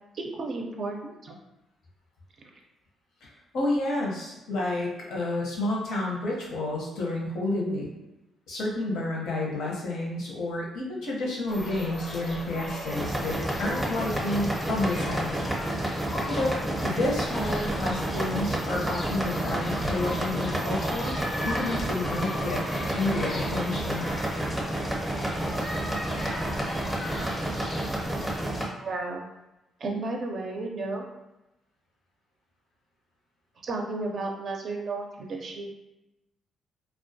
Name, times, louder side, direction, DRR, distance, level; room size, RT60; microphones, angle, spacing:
voice 1, 0.1-1.3 2.4-2.5 28.7-29.2 29.8-31.1 33.6-35.7, right 3 dB, 55° right, 1 dB, 0.4 m, -33 dB
voice 2, 3.2-7.9 8.5-15.9 16.3-16.6 16.8-21.1 21.4-22.6 22.9-24.1, left 2 dB, 80° left, -3 dB, 0.7 m, -30 dB
sound 1, 11.5-28.5, left 1 dB, 35° left, 0.5 m, -37 dB
sound 2, 12.9-28.7, right 1 dB, 5° right, 0.6 m, -30 dB
2.2 x 2.2 x 2.6 m, 0.95 s
cardioid pair, 90°, 0 cm